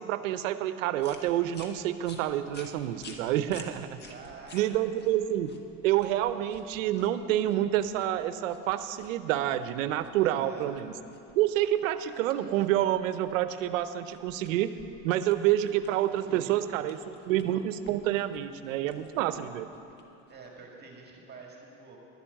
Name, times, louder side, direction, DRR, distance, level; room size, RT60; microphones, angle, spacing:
voice 1, 0.0-4.0 4.5-5.5 5.8-10.9 11.4-14.8 15.0-19.7, right 12 dB, 85° right, 12 dB, 0.7 m, -28 dB
sound 1, 1.0-20.5, left 3 dB, 25° left, 1.4 m, -54 dB
voice 2, 4.0-4.9 10.2-10.7 20.3-22.0, right 4 dB, 25° right, 0 dB, 1.9 m, -47 dB
12.0 x 7.0 x 8.8 m, 2.7 s
supercardioid pair, 115°, 38 cm